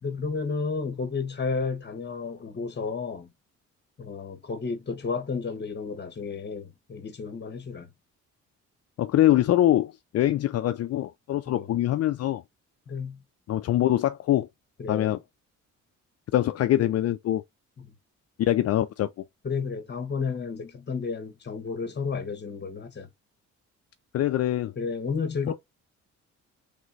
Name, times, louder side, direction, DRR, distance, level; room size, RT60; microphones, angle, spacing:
voice 1, 0.0-3.3 4.0-7.9 11.5-11.7 12.9-13.2 14.8-15.2 19.4-23.1 24.8-25.5, left 5 dB, 35° left, 1.3 m, -32 dB
voice 2, 9.0-12.4 13.5-14.5 14.9-15.2 16.3-17.4 18.4-19.1 24.1-24.7, left 13 dB, 55° left, 0.5 m, -23 dB
3.4 x 3.0 x 3.9 m
cardioid pair, 90°, 30 cm